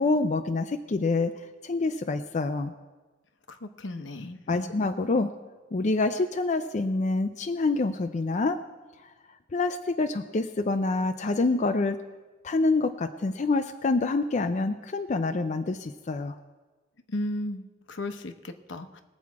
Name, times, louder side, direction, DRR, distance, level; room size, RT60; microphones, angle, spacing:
voice 1, 0.0-1.3 1.6-2.7 4.5-5.3 5.7-8.6 9.5-12.0 12.4-16.4, left 3 dB, 40° left, 7 dB, 0.4 m, -26 dB
voice 2, 3.5-4.7 17.1-19.0, left 1 dB, 75° left, 8 dB, 0.9 m, -35 dB
20.5 x 7.4 x 4.7 m, 1.3 s
head